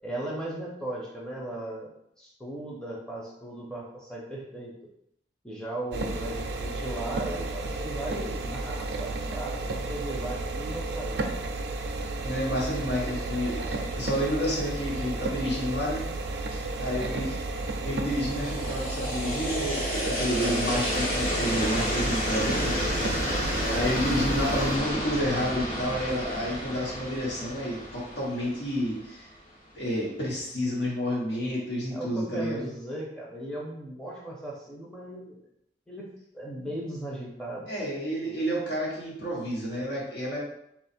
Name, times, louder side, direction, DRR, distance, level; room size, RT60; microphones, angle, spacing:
voice 1, 0.0-4.8 5.4-11.2 16.8-17.2 23.5-23.9 31.9-35.5 35.9-37.7, right 1 dB, 5° left, -4 dB, 0.6 m, -37 dB
sound 1, 5.9-24.8, right 2 dB, 75° right, 0.4 m, -32 dB
voice 2, 12.2-16.0 16.5-29.3 29.7-32.7 37.7-40.4, equal, 75° left, -5 dB, 1.4 m, -30 dB
sound 2, 18.1-29.2, equal, 55° left, 1.0 m, -31 dB
3.1 x 2.4 x 4.3 m, 0.76 s
head